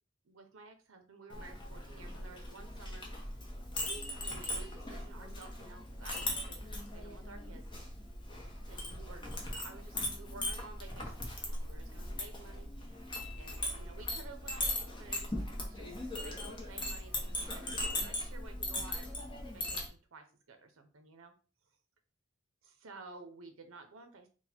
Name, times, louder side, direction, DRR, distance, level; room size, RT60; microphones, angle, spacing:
voice 1, 0.2-3.1 3.5-7.7 8.7-19.1 19.5-21.3 22.6-24.3, right 3 dB, 90° right, 6 dB, 0.7 m, -53 dB
Chink clink, 1.3-19.9, left 1 dB, 25° left, 0.9 m, -39 dB
4.0 x 2.3 x 4.3 m, 0.36 s
head